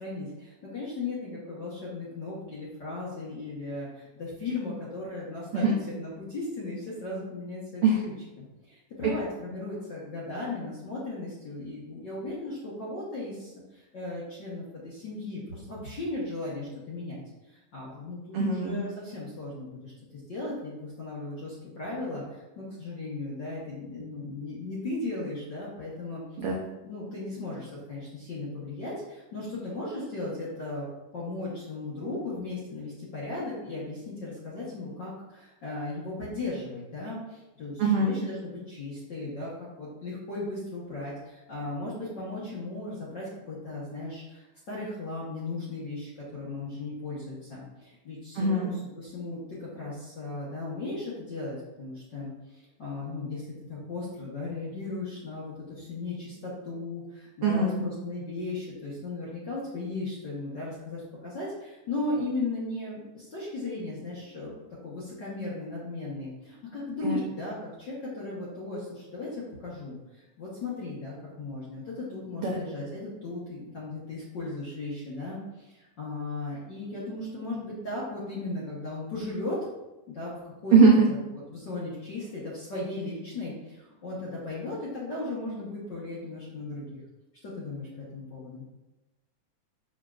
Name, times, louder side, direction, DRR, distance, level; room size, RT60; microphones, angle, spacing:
voice 1, 0.0-17.2 17.5-26.2 26.8-30.9 31.1-64.5 64.8-79.7 80.1-80.8 81.1-81.2 81.5-87.0 87.4-88.6, left 2 dB, 55° left, -7 dB, 1.3 m, -36 dB
voice 2, 18.3-18.8 26.4-26.6 37.8-38.1 48.4-48.7 57.4-57.8 67.0-67.2 72.4-72.6 80.7-81.1, right 4 dB, 80° right, -2 dB, 1.3 m, -21 dB
6.2 x 6.2 x 2.4 m, 1.1 s
omnidirectional pair, 3.6 m